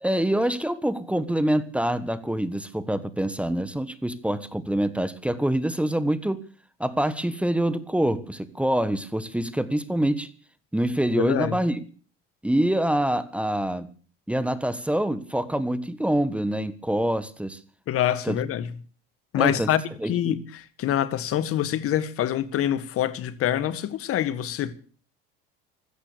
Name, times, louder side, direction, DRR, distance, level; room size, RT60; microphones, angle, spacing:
voice 1, 0.0-6.4 6.8-10.3 10.7-11.8 12.4-13.9 14.3-17.6 18.2-18.4 19.4-19.7 20.0-20.4, right 1 dB, 5° right, 1.4 m, -25 dB
voice 2, 11.1-11.6 17.9-18.7 19.3-24.7, left 11 dB, 50° left, 1.9 m, -25 dB
15.5 x 13.5 x 6.9 m
supercardioid pair, 95°, 29 cm